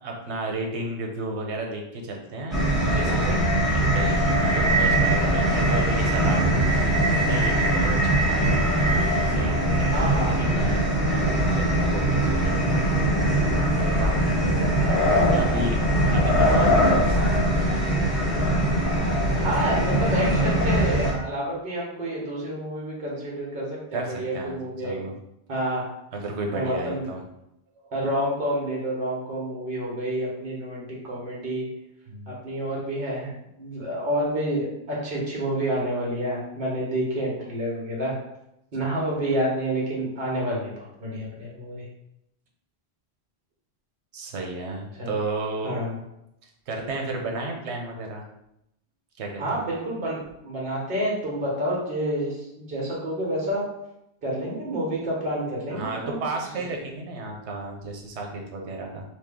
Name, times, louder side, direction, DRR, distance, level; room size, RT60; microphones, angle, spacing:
voice 1, 0.0-2.6 2.9-8.9 9.3-10.8 11.1-13.1 14.0-17.8 19.3-19.5 23.9-25.1 26.1-27.2 27.8-27.9 32.1-32.3 44.1-45.8 46.4-48.2 49.2-49.6 55.7-59.0, right 2 dB, 90° right, 1 dB, 1.0 m, -33 dB
sound 1, 2.5-21.1, right 1 dB, ahead, 1.2 m, -21 dB
voice 2, 9.9-10.3 19.4-25.0 25.5-25.8 26.5-27.0 27.9-31.6 32.3-33.3 33.6-38.1 38.7-40.7 41.0-41.8 45.0-45.1 45.6-46.0 49.4-50.1 50.4-53.6 54.2-56.2, right 1 dB, 55° right, -4 dB, 1.3 m, -28 dB
3.0 x 2.7 x 3.6 m, 0.82 s
omnidirectional pair, 1.1 m